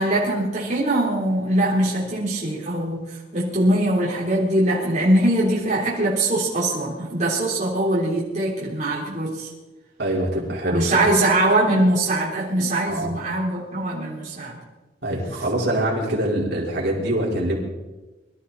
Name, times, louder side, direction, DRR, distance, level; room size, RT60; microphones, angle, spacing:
voice 1, 0.0-9.5 10.7-14.6, right 1 dB, 40° right, -6 dB, 3.8 m, -22 dB
voice 2, 10.0-11.0 12.9-13.1 15.0-17.6, right 1 dB, 60° right, -3 dB, 4.5 m, -24 dB
24.0 x 13.5 x 4.2 m, 1.1 s
head